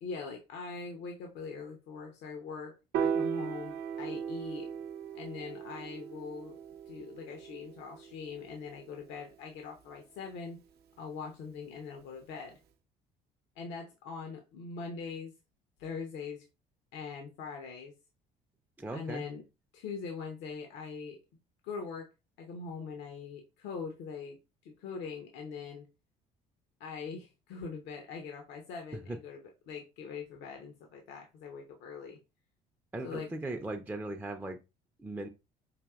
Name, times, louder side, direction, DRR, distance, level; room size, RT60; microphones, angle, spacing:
voice 1, 0.0-4.7 5.1-6.6 6.9-10.6 11.0-12.6 13.6-15.3 15.8-16.4 16.9-17.9 18.9-19.4 19.7-21.2 21.6-22.0 22.4-24.4 24.6-25.9 26.8-29.4 29.7-32.2 33.0-33.3, left 5 dB, 70° left, 0.8 m, -42 dB
Piano, 2.9-9.3, right 7 dB, 55° right, 0.6 m, -37 dB
voice 2, 18.8-19.2 28.9-29.2 32.9-34.6 35.0-35.3, right 2 dB, 10° right, 0.5 m, -38 dB
5.1 x 2.6 x 2.3 m
hypercardioid pair, 70°, 19 cm